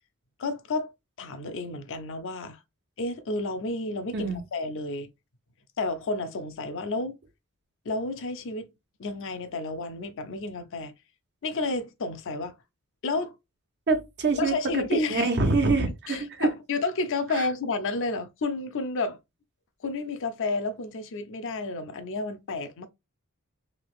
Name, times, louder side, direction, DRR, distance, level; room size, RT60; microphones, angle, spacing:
voice 1, 0.4-0.9 1.2-2.6 3.0-5.1 5.8-7.2 7.8-8.7 9.0-10.9 11.4-12.5 13.0-13.3 14.4-15.3 16.1-19.2 19.8-22.9, left 3 dB, 60° left, 0.6 m, -31 dB
voice 2, 13.9-16.5 17.3-17.5, right 3 dB, 50° right, 0.8 m, -25 dB
3.3 x 2.8 x 2.4 m
head